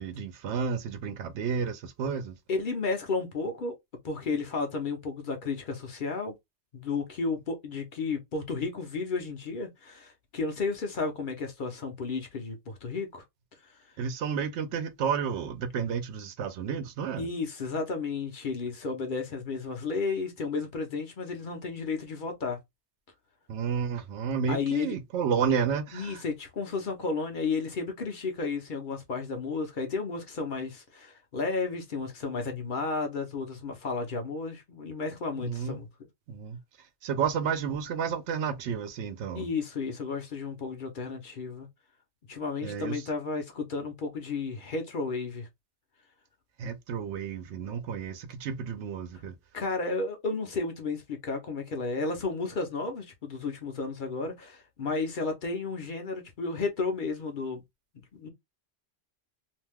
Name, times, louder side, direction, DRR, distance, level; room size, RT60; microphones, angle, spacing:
voice 1, 0.0-2.4 14.0-17.3 23.5-26.2 35.4-35.8 36.3-36.6 37.0-39.5 42.6-43.0 46.6-49.3, right 7 dB, 85° right, 0.9 m, -31 dB
voice 2, 2.5-3.7 4.0-6.3 6.7-13.2 17.2-22.6 24.5-25.0 25.9-35.9 39.3-41.7 42.3-45.5 49.5-57.6 58.1-58.3, left 4 dB, 50° left, 0.8 m, -33 dB
2.6 x 2.2 x 3.3 m
omnidirectional pair, 1.1 m